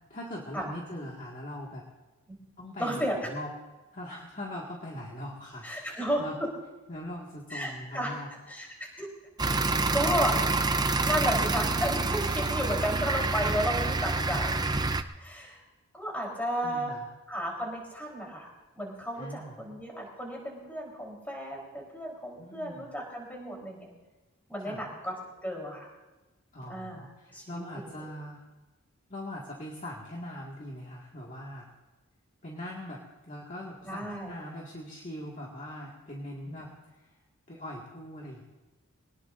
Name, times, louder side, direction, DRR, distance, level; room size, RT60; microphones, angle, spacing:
voice 1, 0.1-1.9 2.6-3.5 3.9-6.4 6.9-8.3 12.4-12.6 16.6-17.1 19.1-19.6 22.4-22.9 24.6-24.8 26.5-28.4 29.1-31.7 32.4-37.2 37.5-38.4, left 1 dB, 35° left, -3 dB, 2.0 m, -41 dB
voice 2, 2.8-3.3 5.6-6.2 7.5-8.2 8.5-9.1 9.9-10.6 11.0-14.6 15.2-15.6 15.9-16.9 17.3-23.9 24.5-25.1 25.4-25.9 26.7-27.4 27.7-27.9 33.8-34.3 36.5-36.7, equal, 5° left, -2 dB, 4.0 m, -33 dB
sound 1, 9.4-15.0, right 3 dB, 20° right, 0.5 m, -27 dB
23.0 x 19.0 x 2.7 m, 1.1 s
head